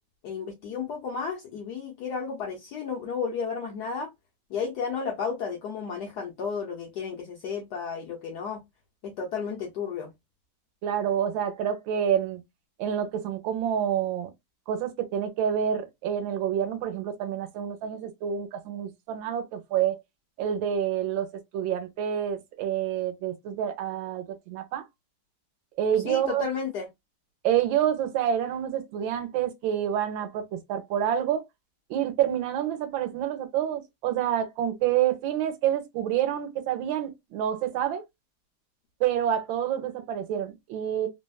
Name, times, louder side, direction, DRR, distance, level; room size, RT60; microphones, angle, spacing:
voice 1, 0.2-4.1 4.5-8.6 9.0-10.1 26.1-26.9, left 6 dB, 70° left, 1.0 m, -33 dB
voice 2, 10.8-12.4 12.8-14.3 14.7-20.0 20.4-21.3 21.5-24.8 25.8-26.5 27.4-31.4 31.9-38.0 39.0-41.1, right 9 dB, 75° right, 1.3 m, -28 dB
3.3 x 2.1 x 2.2 m
omnidirectional pair, 2.3 m